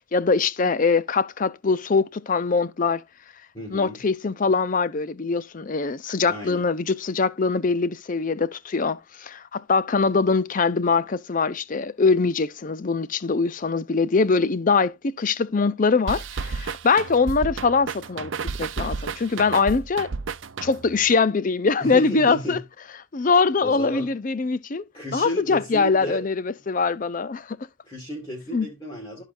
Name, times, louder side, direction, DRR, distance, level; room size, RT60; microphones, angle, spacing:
voice 1, 0.1-3.0 3.7-18.3 18.6-20.1 20.6-22.6 23.1-24.8 25.1-27.6 28.5-28.7, left 4 dB, 40° left, 0.5 m, -22 dB
voice 2, 3.5-4.0 6.3-6.7 21.8-22.6 23.6-24.1 24.9-26.2 27.8-29.2, equal, 25° left, 2.3 m, -33 dB
sound 1, 16.1-21.0, right 5 dB, 60° right, 0.6 m, -32 dB
14.0 x 5.0 x 2.5 m
head